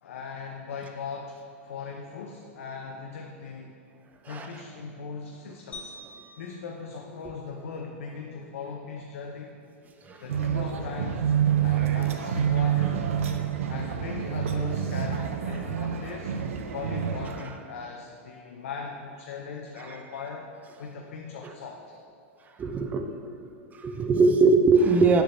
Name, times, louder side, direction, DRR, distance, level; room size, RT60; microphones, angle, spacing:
voice 1, 0.0-3.8 4.3-6.0 6.4-9.6 10.2-11.3 11.6-13.1 13.7-16.3 16.7-20.5 20.8-22.0, left 5 dB, 85° left, 1 dB, 0.5 m, -39 dB
sound 1, 5.7-8.1, left 2 dB, 20° left, 0.7 m, -47 dB
sound 2, 10.3-17.4, right 8 dB, 85° right, 0.5 m, -27 dB
voice 2, 22.6-23.1 23.7-25.2, right 4 dB, 25° right, 5 dB, 0.4 m, -22 dB
6.8 x 5.8 x 2.6 m, 2.5 s
hypercardioid pair, 120°, 7 cm